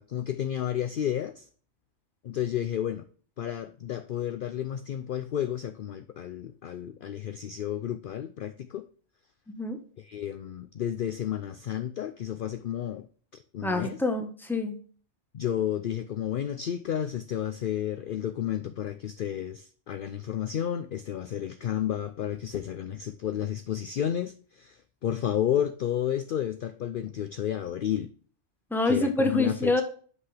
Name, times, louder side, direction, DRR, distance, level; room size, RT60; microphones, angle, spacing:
voice 1, 0.0-1.4 2.2-3.0 3.4-8.8 10.0-13.1 13.5-14.0 15.3-28.1 28.9-29.8, left 10 dB, 60° left, 0.6 m, -31 dB
voice 2, 9.5-9.8 13.6-14.8 28.7-29.8, left 2 dB, ahead, 0.9 m, -26 dB
8.0 x 5.8 x 3.3 m
omnidirectional pair, 1.2 m